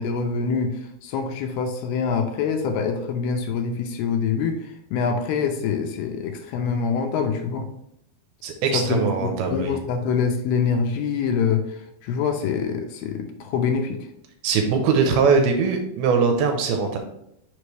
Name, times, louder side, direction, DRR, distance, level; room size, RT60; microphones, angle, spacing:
voice 1, 0.0-7.7 8.7-14.1, left 6 dB, 80° left, 5 dB, 2.4 m, -25 dB
voice 2, 8.4-9.7 14.4-17.0, right 5 dB, 80° right, 4 dB, 2.5 m, -21 dB
6.2 x 5.1 x 3.2 m, 0.77 s
omnidirectional pair, 4.7 m